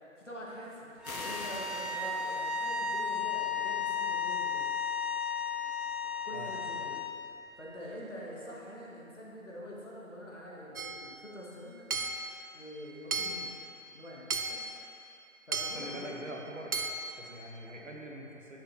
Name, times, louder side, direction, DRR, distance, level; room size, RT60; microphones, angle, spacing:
voice 1, 0.2-4.7 6.2-7.0 7.6-11.9 12.5-13.5 13.9-14.7 15.5-16.2, equal, 60° left, -5 dB, 1.7 m, -45 dB
sound 1, 1.0-3.1, left 2 dB, 80° left, 1.2 m, -44 dB
sound 2, 1.0-7.1, left 5 dB, ahead, 0.3 m, -34 dB
voice 2, 6.3-6.8 15.7-16.8 17.2-18.6, right 1 dB, 60° right, -1 dB, 1.2 m, -43 dB
Hammer / Chink clink, 10.8-11.1 11.9-12.3 13.1-13.5 14.3-14.7 15.5-15.9 16.7-17.1, right 3 dB, 90° right, 0.7 m, -34 dB
9.5 x 6.7 x 2.9 m, 2.7 s
figure-of-eight pair, 180°, 42 cm